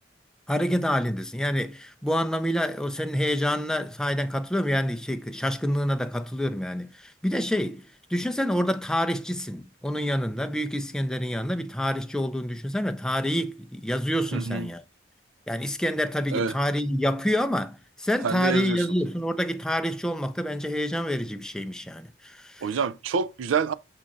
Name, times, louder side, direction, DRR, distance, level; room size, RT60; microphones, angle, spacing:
voice 1, 0.5-7.8 8.1-14.8 15.5-22.8, equal, 5° left, 0.4 m, -27 dB
voice 2, 14.3-14.7 16.3-16.5 18.2-18.8 22.6-23.7, right 5 dB, 90° right, 0.4 m, -27 dB
6.4 x 3.8 x 3.9 m
head